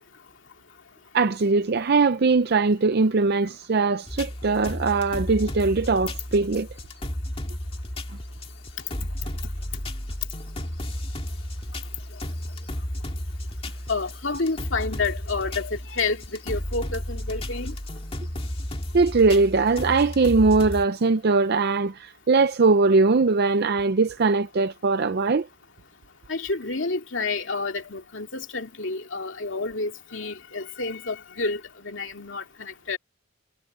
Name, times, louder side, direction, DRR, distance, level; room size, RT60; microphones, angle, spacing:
voice 1, 1.1-6.7 18.9-25.5, right 4 dB, 50° right, 0.5 m, -21 dB
sound 1, 4.1-20.9, left 1 dB, 30° left, 2.2 m, -33 dB
voice 2, 13.9-17.7 26.3-33.0, left 3 dB, 60° left, 2.5 m, -29 dB
head